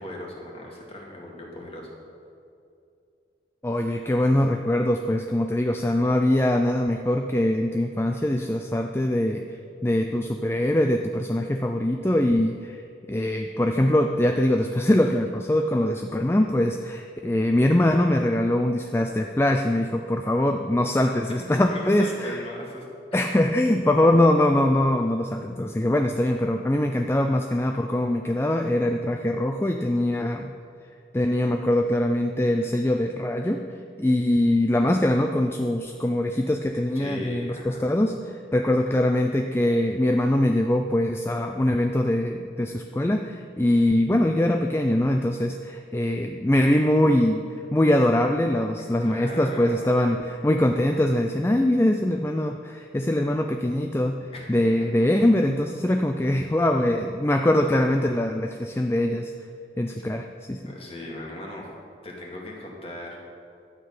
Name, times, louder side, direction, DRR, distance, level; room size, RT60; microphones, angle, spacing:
voice 1, 0.0-1.9 21.6-22.9 37.0-37.8 49.0-49.8 54.3-55.1 60.0-60.1 60.7-61.7 62.0-63.2, left 1 dB, 35° left, -2 dB, 2.1 m, -38 dB
voice 2, 3.6-9.4 9.8-12.8 13.1-22.4 23.1-30.5 31.1-33.7 34.0-47.4 47.7-54.2 54.5-59.3 59.8-60.7, left 1 dB, 15° left, 4 dB, 0.4 m, -23 dB
12.5 x 8.8 x 5.6 m, 2.5 s
head